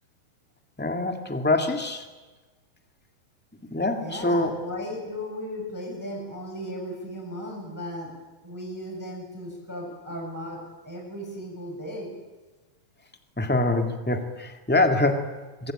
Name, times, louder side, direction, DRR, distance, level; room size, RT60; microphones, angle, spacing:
voice 1, 0.8-2.0 3.7-4.5 13.4-15.7, left 2 dB, 15° left, 5 dB, 0.4 m, -25 dB
voice 2, 4.0-8.1 8.4-10.6 10.8-12.1, equal, 5° right, -2 dB, 7.4 m, -36 dB
24.5 x 24.0 x 8.9 m, 1.2 s
omnidirectional pair, 4.5 m